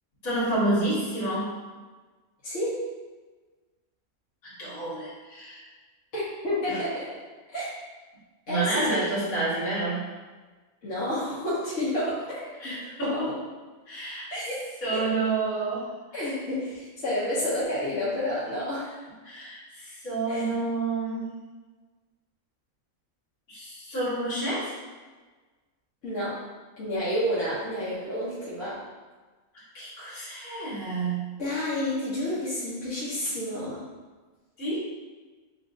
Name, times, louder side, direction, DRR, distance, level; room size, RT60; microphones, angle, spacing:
voice 1, 0.2-1.6 4.4-5.6 6.7-6.8 8.5-10.1 12.6-13.3 13.9-14.3 14.8-15.9 19.2-21.3 23.5-24.8 29.7-31.4 34.6-34.8, right 2 dB, 80° left, -9 dB, 2.0 m, -29 dB
voice 2, 2.4-2.8 6.1-7.1 7.5-7.7 8.5-9.1 10.8-13.4 14.3-14.6 14.9-15.0 16.1-18.9 20.3-20.5 26.0-26.4 26.8-28.8 31.4-33.9, left 1 dB, 60° left, -10 dB, 1.4 m, -30 dB
5.9 x 2.6 x 2.5 m, 1.3 s
omnidirectional pair, 1.5 m